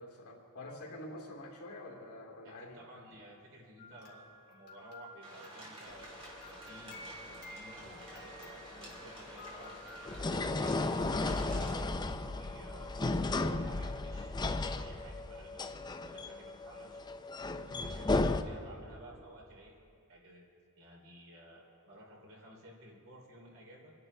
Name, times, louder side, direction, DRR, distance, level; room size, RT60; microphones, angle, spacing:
voice 1, 0.0-2.8, left 1 dB, 75° left, -2 dB, 2.8 m, -47 dB
voice 2, 2.4-10.3 11.0-17.0 17.6-19.7 20.1-20.4 20.8-23.9, right 1 dB, 65° right, -2 dB, 3.1 m, -54 dB
sound 1, 3.8-10.0, left 1 dB, 50° left, 2.5 m, -53 dB
sound 2, 5.2-11.8, right 1 dB, 25° right, 3.2 m, -51 dB
sound 3, 5.9-18.4, left 2 dB, 20° left, 0.4 m, -35 dB
27.0 x 11.0 x 3.3 m, 2.4 s
head